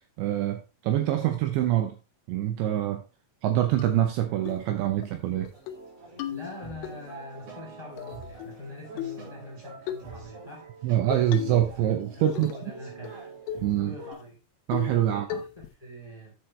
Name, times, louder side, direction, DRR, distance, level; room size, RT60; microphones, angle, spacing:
voice 1, 0.2-2.0 2.3-3.0 3.4-5.5 10.8-12.5 13.6-13.9 14.7-15.3, right 12 dB, 75° right, 2.8 m, -25 dB
sound 1, 3.8-3.9 4.5-4.7 5.0-5.1 5.5-5.8 6.2-6.9 8.0-8.6 9.0-9.3 9.9-10.1 11.1-11.7 12.0-12.7 13.0-13.1 13.5-13.7 14.1-14.2 14.7-15.0 15.3-15.7, left 11 dB, 80° left, 3.2 m, -35 dB
sound 2, 5.5-14.1, right 3 dB, 45° right, 5.5 m, -45 dB
voice 2, 6.2-10.7 12.1-14.4 15.1-16.4, left 1 dB, 10° left, 2.6 m, -44 dB
9.8 x 8.2 x 3.2 m
omnidirectional pair, 5.8 m